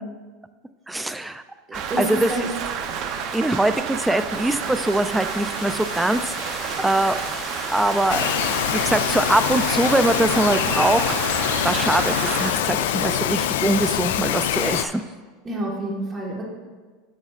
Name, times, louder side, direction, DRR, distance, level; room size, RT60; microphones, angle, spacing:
voice 1, 0.9-1.4 1.7-2.5 3.3-7.2 7.7-8.3 8.7-11.1 11.6-15.0, right 1 dB, 5° right, 11 dB, 0.3 m, -23 dB
Rain, 1.7-12.5, right 7 dB, 50° right, 0.7 m, -30 dB
voice 2, 1.9-2.5 15.4-16.4, right 1 dB, 25° right, -2 dB, 1.5 m, -28 dB
sound 1, 3.7-10.3, left 3 dB, 30° left, 1.8 m, -38 dB
Bird vocalization bird call bird song, 8.1-14.8, left 10 dB, 85° left, 0.3 m, -24 dB
9.7 x 7.1 x 2.4 m, 1.4 s
supercardioid pair, 130°, 0 cm